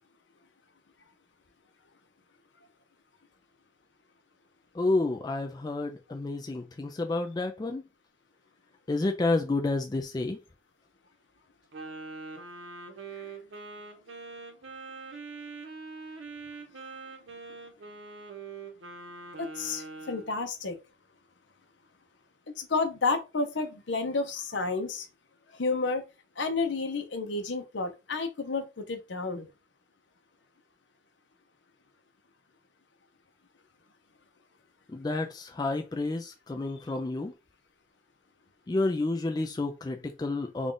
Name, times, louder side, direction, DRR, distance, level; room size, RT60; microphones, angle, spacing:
voice 1, 4.7-7.8 8.9-10.4 34.9-37.3 38.7-40.7, left 2 dB, 20° left, 0.3 m, -30 dB
Wind instrument woodwind instrument, 11.7-20.3, right 3 dB, 80° right, 1.0 m, -43 dB
voice 2, 19.4-20.8 22.6-25.1 25.5-26.0 26.4-29.5, left 3 dB, 70° left, 0.8 m, -31 dB
3.6 x 2.4 x 3.8 m
head